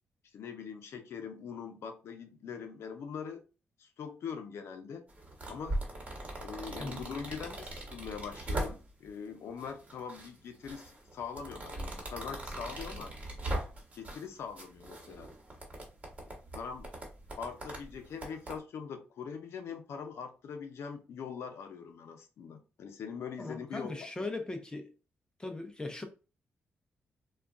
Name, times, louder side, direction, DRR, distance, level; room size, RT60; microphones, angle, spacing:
voice 1, 0.3-3.4 3.8-5.0 5.5-5.8 6.4-13.1 13.9-15.3 16.2-16.9 17.4-24.3, left 6 dB, 75° left, 0.6 m, -42 dB
sound 1, 5.1-9.1 9.6-10.3 10.6-14.3 14.6-18.6, right 1 dB, 35° right, 1.2 m, -40 dB
voice 2, 23.4-24.9 25.4-26.0, left 2 dB, 20° left, 0.5 m, -39 dB
2.3 x 2.2 x 3.6 m
cardioid pair, 95°, 4 cm